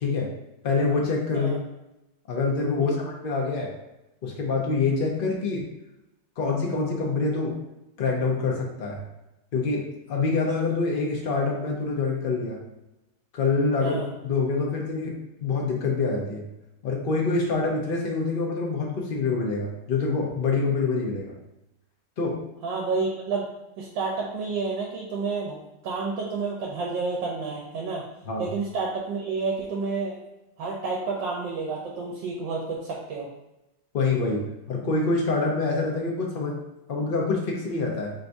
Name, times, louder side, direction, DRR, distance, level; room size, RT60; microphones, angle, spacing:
voice 1, 0.6-1.5 2.3-3.7 4.2-5.7 6.4-7.5 8.0-9.0 9.5-9.8 10.1-12.6 13.3-14.0 14.2-15.1 15.4-16.5 16.8-21.3 22.2-22.4 28.3-28.5 33.9-36.6 36.9-38.1, left 4 dB, 65° left, -1 dB, 0.5 m, -26 dB
voice 2, 22.6-25.6 25.8-28.0 28.4-30.2 30.6-33.3, right 4 dB, 80° right, -2 dB, 1.4 m, -30 dB
3.7 x 2.6 x 4.5 m, 0.92 s
omnidirectional pair, 2.0 m